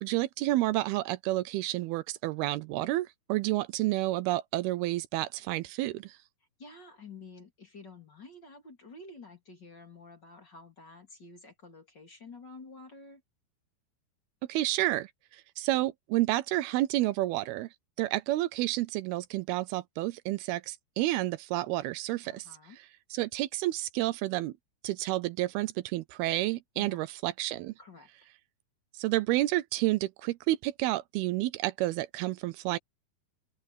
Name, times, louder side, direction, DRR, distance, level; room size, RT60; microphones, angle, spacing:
voice 1, 0.0-6.2 14.5-17.7 18.0-22.5 23.1-24.5 24.8-27.7 29.0-32.8, right 17 dB, 80° right, 2.6 m, -30 dB
voice 2, 6.6-13.2 22.2-22.8 26.8-27.1 27.8-28.1, left 3 dB, 30° left, 3.6 m, -50 dB
open air
omnidirectional pair, 4.5 m